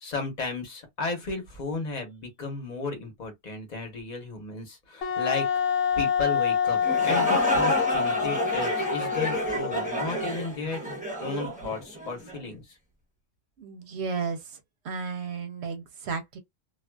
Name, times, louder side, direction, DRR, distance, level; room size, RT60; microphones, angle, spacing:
voice 1, 0.0-5.5 6.0-10.8 11.2-12.6, left 3 dB, 35° left, 1.0 m, -34 dB
Wind instrument woodwind instrument, 5.0-10.5, left 7 dB, 70° left, 0.9 m, -27 dB
sound 1, 6.7-12.4, right 1 dB, 10° right, 0.6 m, -30 dB
voice 2, 13.6-14.6 14.8-16.4, right 5 dB, 65° right, 0.8 m, -33 dB
2.4 x 2.4 x 2.2 m
omnidirectional pair, 1.3 m